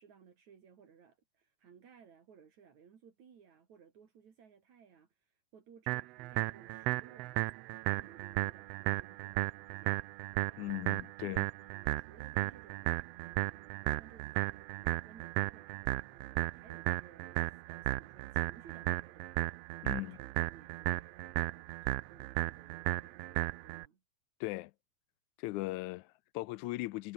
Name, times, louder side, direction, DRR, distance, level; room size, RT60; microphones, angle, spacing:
voice 1, 0.0-10.0 10.4-11.1 11.6-19.3 19.7-24.0, right 7 dB, 70° right, 4.1 m, -60 dB
sound 1, 5.9-23.9, right 19 dB, 90° right, 1.4 m, -35 dB
voice 2, 10.6-11.5 19.8-20.2 24.4-24.7 25.4-27.1, left 19 dB, 85° left, 1.9 m, -38 dB
omnidirectional pair, 3.4 m